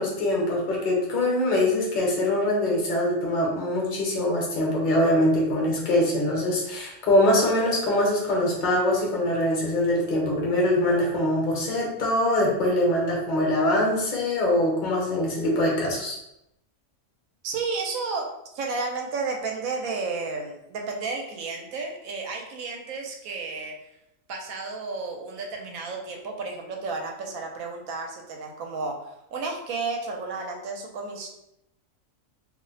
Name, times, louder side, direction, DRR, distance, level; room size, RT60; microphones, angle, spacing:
voice 1, 0.0-16.2, left 1 dB, 40° left, -3 dB, 0.8 m, -23 dB
voice 2, 17.4-18.3 18.5-23.7 24.3-29.1 29.3-31.3, right 4 dB, 80° right, 1 dB, 1.0 m, -32 dB
2.6 x 2.0 x 3.9 m, 0.82 s
omnidirectional pair, 1.4 m